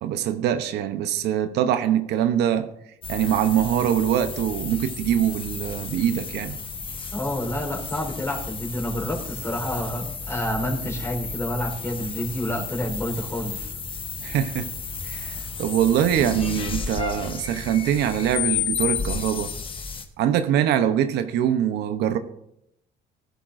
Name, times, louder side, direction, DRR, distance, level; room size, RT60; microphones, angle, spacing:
voice 1, 0.0-2.7 3.1-6.6 14.2-14.7 15.0-19.5 20.2-22.2, right 10 dB, 80° right, 0.8 m, -23 dB
sound 1, 3.0-20.0, left 6 dB, 30° left, 1.2 m, -32 dB
voice 2, 7.1-13.7, equal, 15° left, 4.1 m, -29 dB
19.0 x 11.5 x 2.6 m
cardioid pair, 110°, 17 cm